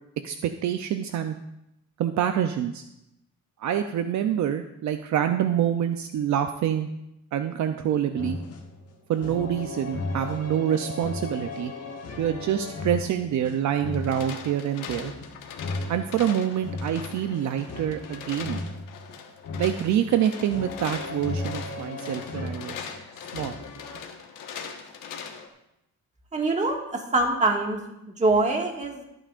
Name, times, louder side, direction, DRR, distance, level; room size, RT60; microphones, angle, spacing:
voice 1, 0.2-1.3 2.0-2.8 3.6-6.9 7.3-8.4 9.1-11.7 12.2-15.1 15.9-18.6 19.6-22.9 23.3-23.6, right 10 dB, 65° right, 8 dB, 0.6 m, -26 dB
sound 1, 8.2-24.0, left 2 dB, 50° left, 1.5 m, -36 dB
sound 2, 13.8-25.5, left 7 dB, 90° left, 1.4 m, -41 dB
voice 2, 26.3-27.8 28.2-29.0, right 2 dB, 20° right, 1 dB, 1.9 m, -24 dB
22.5 x 8.9 x 2.5 m, 0.86 s
cardioid pair, 140°, 31 cm